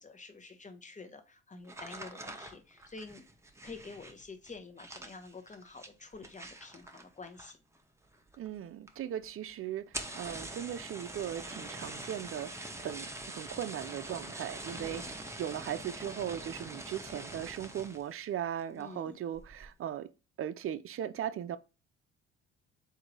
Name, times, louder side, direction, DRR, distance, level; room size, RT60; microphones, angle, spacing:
voice 1, 0.0-3.2 3.6-7.6 14.8-15.2 18.7-19.2, left 4 dB, 25° left, 1.1 m, -48 dB
sound 1, 1.6-7.8 8.1-8.6 8.9-9.0 9.2-9.3 9.8-18.1 18.6-18.9 19.3-19.7, right 2 dB, 10° right, 0.9 m, -44 dB
voice 2, 8.4-9.9 10.2-20.1 20.4-21.6, right 10 dB, 45° right, 0.5 m, -38 dB
3.8 x 2.7 x 4.6 m
hypercardioid pair, 60°, 31 cm